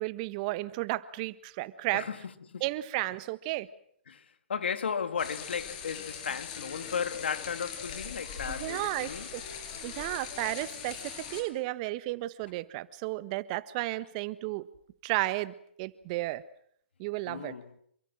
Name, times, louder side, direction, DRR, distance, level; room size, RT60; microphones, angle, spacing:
voice 1, 0.0-2.1 2.6-3.7 8.5-9.4 9.8-14.7 15.0-16.4 17.0-17.6, right 18 dB, 40° right, 1.4 m, -33 dB
voice 2, 4.5-9.3 17.2-17.7, left 6 dB, 75° left, 2.5 m, -35 dB
sound 1, 5.2-11.4, left 7 dB, 45° left, 7.9 m, -41 dB
28.0 x 24.0 x 6.3 m
hypercardioid pair, 130°, 6 cm